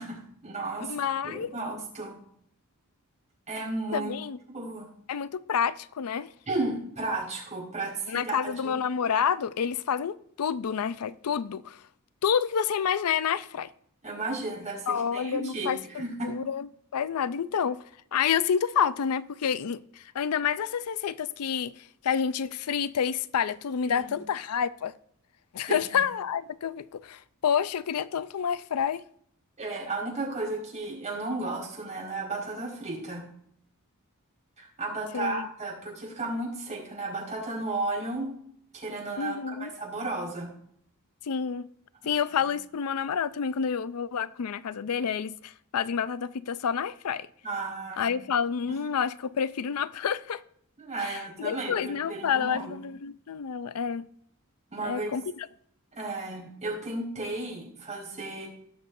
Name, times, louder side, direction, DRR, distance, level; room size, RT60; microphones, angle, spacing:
voice 1, 0.0-2.2 3.5-4.1 4.5-4.9 6.5-8.8 14.0-16.3 23.8-24.1 25.7-26.0 29.6-33.2 34.6-38.3 38.7-40.5 47.4-48.2 48.7-48.8 50.8-52.7 54.7-55.2 55.9-58.5, right 2 dB, 30° right, 4.9 m, -34 dB
voice 2, 0.8-1.5 3.9-4.4 5.1-6.3 8.1-11.8 12.2-13.7 14.9-17.8 18.1-21.8 22.0-24.9 25.5-29.0 35.1-35.4 39.2-39.7 41.2-41.7 42.1-47.3 48.0-50.4 51.0-54.1 54.8-55.5, left 7 dB, 80° left, 0.4 m, -29 dB
18.5 x 6.9 x 2.6 m
head